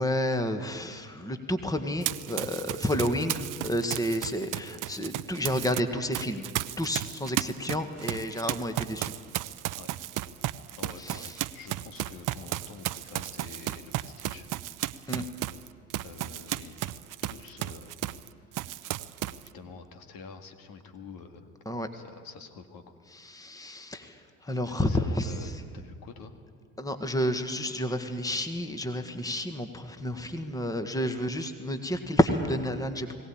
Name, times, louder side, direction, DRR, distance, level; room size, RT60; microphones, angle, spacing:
voice 1, 0.0-6.5 6.8-9.1 11.0-11.4 15.1-15.2 21.6-21.9 23.1-25.5 26.8-33.1, equal, 10° left, 7 dB, 1.8 m, -30 dB
Run, 2.0-5.8 6.1-18.3 18.5-19.5, right 15 dB, 50° right, 0.8 m, -34 dB
voice 2, 10.7-14.5 16.0-17.9 18.5-18.7 19.5-21.5 21.9-23.0 24.5-26.3, left 5 dB, 55° left, 6 dB, 2.1 m, -47 dB
21.5 x 17.0 x 8.8 m, 2.1 s
hypercardioid pair, 60°, 42 cm